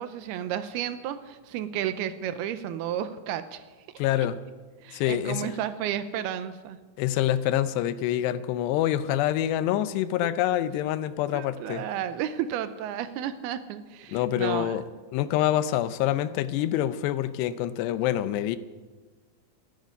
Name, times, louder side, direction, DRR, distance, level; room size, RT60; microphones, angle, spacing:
voice 1, 0.0-3.6 4.2-4.3 4.8-6.8 11.3-14.8, right 10 dB, 80° right, 11 dB, 2.5 m, -32 dB
voice 2, 4.0-4.4 4.9-5.6 7.0-11.8 14.1-14.8 15.1-18.6, left 12 dB, 90° left, 13 dB, 2.9 m, -26 dB
13.5 x 10.5 x 9.3 m, 1.3 s
omnidirectional pair, 4.8 m